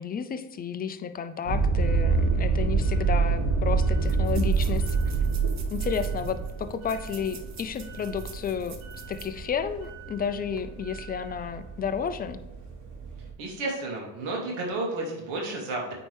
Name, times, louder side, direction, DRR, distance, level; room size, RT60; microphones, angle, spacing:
voice 1, 0.0-4.8 5.7-8.8 9.1-12.4, left 7 dB, 20° left, 10 dB, 0.3 m, -32 dB
sound 1, 1.5-13.3, right 4 dB, 60° right, 1.9 m, -27 dB
sound 2, 2.9-3.0 3.2-3.3 4.0-9.4 9.8-9.9 10.4-10.6, right 6 dB, 35° right, 1.0 m, -48 dB
voice 2, 13.4-15.9, right 2 dB, 75° right, -1 dB, 2.5 m, -31 dB
8.9 x 4.4 x 3.3 m, 1.0 s
cardioid pair, 105°, 49 cm